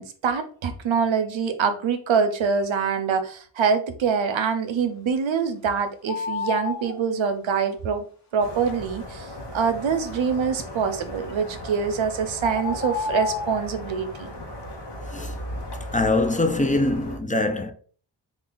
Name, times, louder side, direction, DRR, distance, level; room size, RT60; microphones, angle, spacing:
voice 1, 0.0-8.0 8.3-14.3, right 6 dB, 85° right, 0.7 m, -25 dB
sound 1, 6.1-7.0 11.6-11.7 12.4-13.7, left 5 dB, 35° left, 1.0 m, -29 dB
sound 2, 8.4-17.2, left 1 dB, 65° left, 0.9 m, -38 dB
voice 2, 15.9-17.7, left 2 dB, 15° left, 0.5 m, -23 dB
3.3 x 2.4 x 3.8 m
cardioid pair, 50°, 46 cm